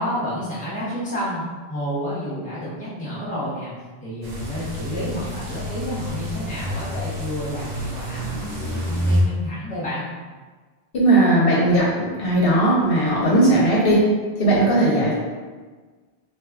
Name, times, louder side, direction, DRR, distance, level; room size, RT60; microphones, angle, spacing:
voice 1, 0.0-3.7 4.0-10.0, equal, 10° left, -8 dB, 0.8 m, -30 dB
sound 1, 4.2-9.2, equal, 90° right, 1.0 m, -28 dB
voice 2, 10.9-14.1 14.4-15.1, right 1 dB, 65° left, -5 dB, 0.8 m, -18 dB
2.8 x 2.2 x 3.4 m, 1.4 s
omnidirectional pair, 1.1 m